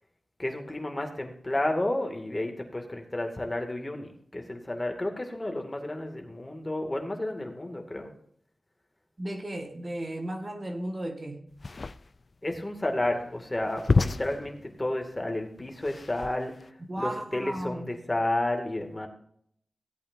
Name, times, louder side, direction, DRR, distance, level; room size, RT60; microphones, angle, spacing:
voice 1, 0.4-8.1 12.4-16.7 17.0-19.1, left 1 dB, 25° left, 2.2 m, -31 dB
voice 2, 9.2-11.5 16.9-18.0, right 1 dB, 40° right, 1.6 m, -35 dB
sound 1, 11.5-16.7, left 3 dB, 50° left, 0.4 m, -31 dB
17.0 x 8.6 x 2.7 m
cardioid pair, 55°, 0 cm